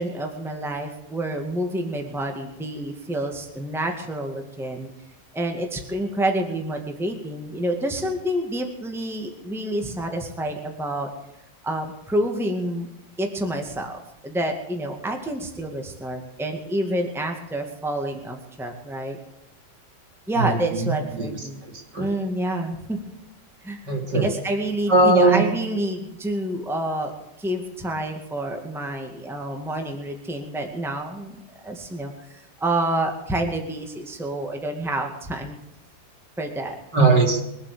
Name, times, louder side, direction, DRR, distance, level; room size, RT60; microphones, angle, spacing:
voice 1, 0.0-4.9 5.3-11.1 11.6-12.9 13.2-19.2 20.3-21.6 22.0-23.0 23.6-27.1 27.4-31.4 31.6-35.6 36.4-36.8, right 1 dB, ahead, 3 dB, 2.0 m, -28 dB
voice 2, 20.3-21.3 21.6-22.1 23.9-24.3 24.9-25.4 36.9-37.4, right 3 dB, 65° right, 1 dB, 4.1 m, -19 dB
23.0 x 8.7 x 6.9 m, 0.88 s
omnidirectional pair, 2.0 m